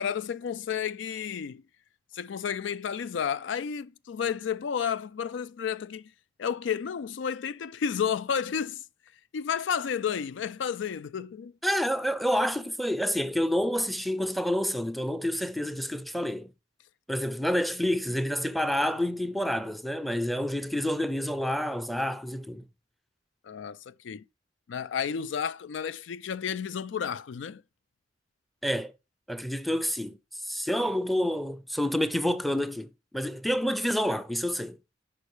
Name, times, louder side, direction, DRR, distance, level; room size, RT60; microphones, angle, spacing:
voice 1, 0.0-1.6 2.1-6.1 6.4-8.8 9.3-11.5 23.4-24.2 24.7-27.6, left 7 dB, 80° left, 0.4 m, -31 dB
voice 2, 11.6-16.5 17.1-22.6 28.6-28.9 29.3-30.2 30.4-34.8, equal, ahead, 0.5 m, -28 dB
11.0 x 5.5 x 4.9 m
head